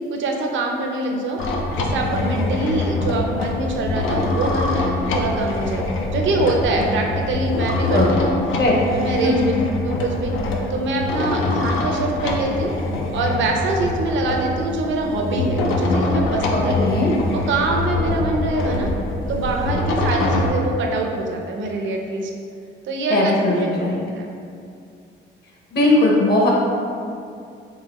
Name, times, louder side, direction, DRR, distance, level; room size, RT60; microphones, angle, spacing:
voice 1, 0.1-1.4 1.8-5.8 6.1-8.4 8.9-9.5 9.8-10.3 10.7-12.7 13.1-16.8 17.3-18.9 19.3-22.3 22.8-23.9 24.1-24.3, right 2 dB, 70° right, 1 dB, 0.6 m, -24 dB
sound 1, 1.4-20.5, left 2 dB, 85° left, 0.5 m, -24 dB
voice 2, 16.5-17.1 23.1-24.0 25.7-26.5, left 2 dB, 55° left, -3 dB, 1.0 m, -18 dB
3.8 x 3.6 x 3.0 m, 2.4 s
cardioid pair, 90°, 20 cm